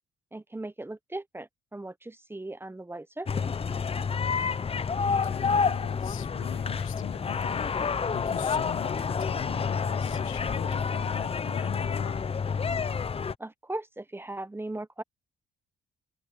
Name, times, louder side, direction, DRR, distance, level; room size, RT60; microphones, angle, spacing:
voice 1, 0.3-3.4 13.4-15.0, right 2 dB, 10° right, 0.9 m, -38 dB
sound 1, 3.3-13.3, left 5 dB, 30° left, 0.7 m, -29 dB
voice 2, 5.0-7.7 8.1-12.2, left 14 dB, 85° left, 0.9 m, -41 dB
open air
cardioid pair, 90°, 20 cm